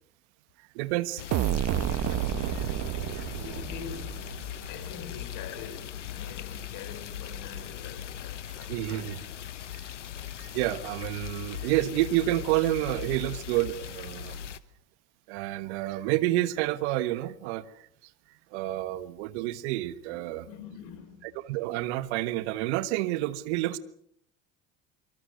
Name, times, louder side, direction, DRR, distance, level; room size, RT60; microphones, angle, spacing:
voice 1, 0.7-1.2 2.5-3.3 8.7-9.2 10.4-14.4 15.3-17.9 18.5-20.5 21.2-23.8, right 15 dB, 70° right, 1.5 m, -29 dB
sound 1, 1.2-14.6, left 10 dB, 90° left, 1.0 m, -39 dB
sound 2, 1.3-5.0, right 14 dB, 50° right, 1.1 m, -30 dB
voice 2, 3.1-4.4 4.7-9.3 18.6-18.9 20.1-21.3, left 7 dB, 60° left, 5.4 m, -45 dB
25.0 x 24.5 x 6.5 m
hypercardioid pair, 65°, 35 cm